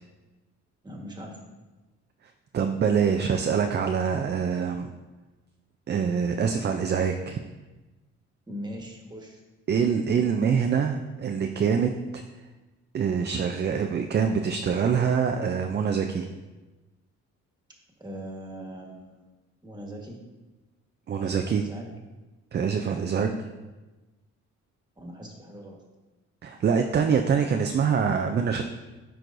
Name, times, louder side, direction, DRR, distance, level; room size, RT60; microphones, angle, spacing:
voice 1, 0.8-1.4 8.5-9.4 18.0-19.2 19.6-20.2 21.2-21.9 23.1-23.4 25.0-25.8, equal, 15° right, 0 dB, 1.4 m, -40 dB
voice 2, 2.5-4.9 5.9-7.4 9.7-12.2 12.9-16.3 21.1-21.6 22.5-23.3 26.4-28.6, right 6 dB, 35° right, 5 dB, 0.4 m, -25 dB
10.5 x 4.6 x 2.6 m, 1.2 s
cardioid pair, 90°, 30 cm